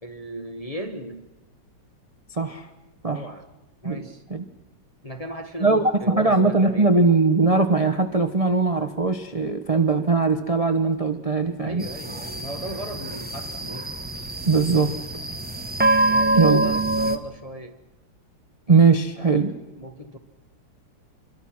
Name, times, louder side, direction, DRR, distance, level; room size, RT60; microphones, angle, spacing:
voice 1, 0.0-1.3 3.1-3.4 3.8-4.2 5.0-6.9 11.6-13.9 16.1-17.8 19.3-20.2, right 1 dB, 25° left, 5 dB, 0.8 m, -37 dB
voice 2, 2.3-2.7 3.0-3.2 3.8-4.0 4.3-4.4 5.6-11.8 14.4-14.9 16.3-16.6 18.7-19.5, right 4 dB, 35° right, 7 dB, 0.5 m, -20 dB
sound 1, 11.8-17.2, right 2 dB, 5° right, 1.0 m, -25 dB
25.5 x 23.0 x 6.0 m, 1.1 s
omnidirectional pair, 2.3 m